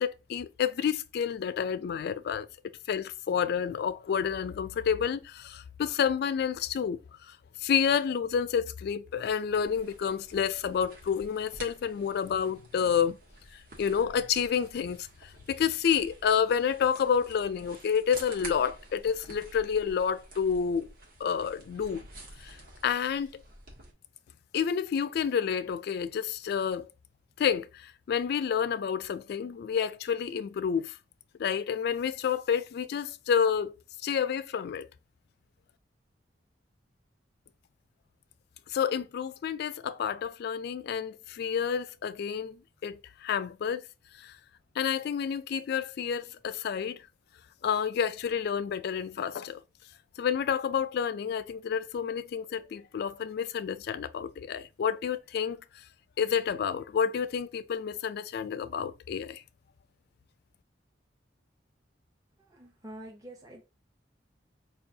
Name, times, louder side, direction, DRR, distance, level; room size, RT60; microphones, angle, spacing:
voice 1, 0.0-2.5 2.9-13.2 13.5-20.9 21.2-22.0 22.4-22.6 22.8-23.4 24.5-26.9 27.4-31.0 31.4-33.8 34.0-34.9 38.7-43.8 44.2-44.4 44.8-47.0 47.6-49.6 50.2-55.6 56.2-59.4, left 7 dB, 60° left, 0.3 m, -29 dB
sound 1, 9.7-23.9, right 2 dB, 55° right, 1.1 m, -50 dB
voice 2, 62.4-63.6, right 1 dB, 20° right, 0.6 m, -46 dB
5.3 x 2.3 x 2.6 m
head